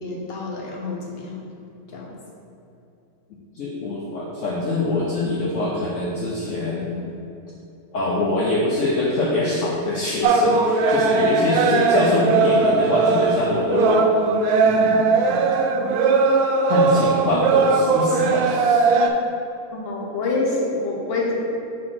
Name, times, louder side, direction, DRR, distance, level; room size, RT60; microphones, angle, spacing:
voice 1, 0.0-1.4 1.9-2.1 19.7-21.4, left 3 dB, 45° left, -3 dB, 1.1 m, -27 dB
voice 2, 3.5-7.1 7.9-14.1 14.6-15.0 16.7-18.9, left 2 dB, 60° left, -4 dB, 1.0 m, -24 dB
sound 1, 10.2-19.1, right 4 dB, 80° right, 1.1 m, -19 dB
4.7 x 4.2 x 5.7 m, 2.8 s
omnidirectional pair, 1.6 m